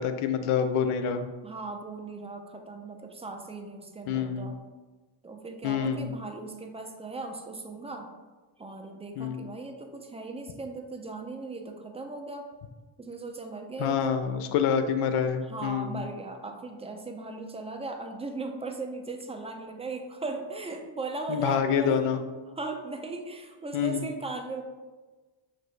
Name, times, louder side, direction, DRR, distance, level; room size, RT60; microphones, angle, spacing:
voice 1, 0.0-1.3 4.1-4.5 5.6-6.1 9.2-9.4 13.8-16.0 21.3-22.2 23.7-24.0, left 7 dB, 85° left, 8 dB, 0.6 m, -27 dB
voice 2, 1.4-4.6 5.2-8.1 8.6-12.5 13.0-14.2 15.5-22.0 22.6-24.6, right 3 dB, 15° right, 4 dB, 0.4 m, -37 dB
5.7 x 2.6 x 3.1 m, 1.3 s
cardioid pair, 90°, 50 cm